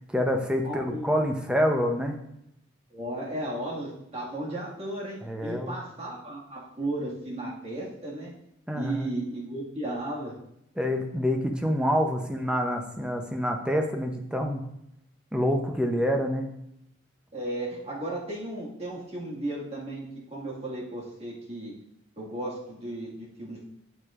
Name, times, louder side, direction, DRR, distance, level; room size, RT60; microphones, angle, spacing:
voice 1, 0.1-2.2 5.2-5.7 8.7-9.0 10.8-14.6 15.3-16.5, equal, 5° right, 3 dB, 0.7 m, -27 dB
voice 2, 0.6-1.1 2.9-8.3 8.8-10.4 17.3-21.7 22.2-23.7, right 1 dB, 35° right, -5 dB, 1.9 m, -35 dB
8.1 x 7.1 x 2.5 m, 0.79 s
head